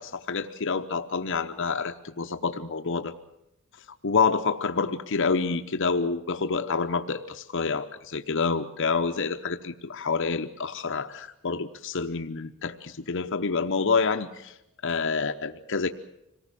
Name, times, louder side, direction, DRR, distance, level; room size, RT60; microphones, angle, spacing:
voice 1, 0.0-3.1 4.0-14.6 14.8-15.9, left 4 dB, 60° left, 6 dB, 0.8 m, -28 dB
26.0 x 19.0 x 7.4 m, 0.88 s
head